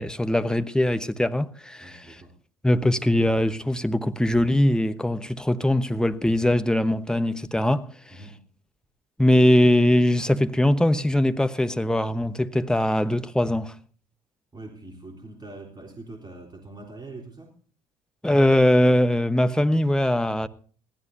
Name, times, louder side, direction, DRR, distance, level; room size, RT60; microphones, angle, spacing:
voice 1, 0.0-2.2 2.6-8.2 9.2-13.7 18.2-20.5, left 1 dB, 5° left, 1.1 m, -21 dB
voice 2, 1.8-2.3 8.1-8.4 14.5-17.5, right 2 dB, 25° right, 3.9 m, -43 dB
21.5 x 16.0 x 2.7 m
hypercardioid pair, 55°, 17 cm